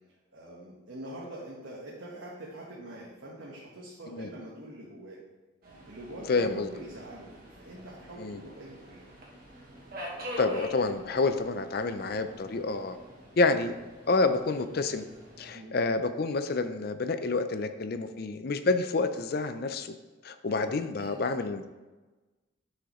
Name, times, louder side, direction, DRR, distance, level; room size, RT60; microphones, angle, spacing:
voice 1, 0.3-5.2 5.9-9.1 15.5-15.8 20.5-20.6 21.0-21.2, right 1 dB, 80° right, -5 dB, 1.3 m, -44 dB
Subway metro underground, 5.6-15.5, equal, 50° right, 1.5 m, -45 dB
voice 2, 6.3-6.7 8.2-8.4 10.4-13.0 13.4-13.8 14.1-15.0 15.4-19.9 20.2-21.7, left 3 dB, 50° left, 10 dB, 0.5 m, -28 dB
10.0 x 4.9 x 3.1 m, 1.2 s
head